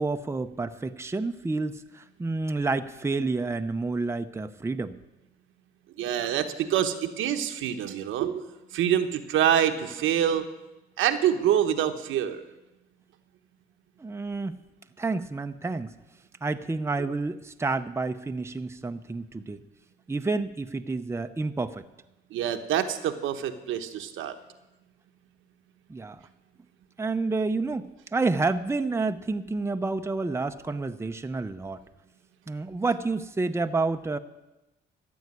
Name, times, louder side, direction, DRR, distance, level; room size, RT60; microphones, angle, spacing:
voice 1, 0.0-5.0 14.0-14.6 15.0-15.9 16.4-19.6 20.1-21.9 25.9-26.2 27.0-31.8 32.5-34.2, right 3 dB, 15° right, 8 dB, 0.7 m, -29 dB
voice 2, 6.0-8.4 8.7-10.4 11.0-12.4 22.3-24.3, right 10 dB, 85° right, 7 dB, 1.1 m, -26 dB
14.0 x 7.1 x 9.6 m, 1.0 s
cardioid pair, 90°, 20 cm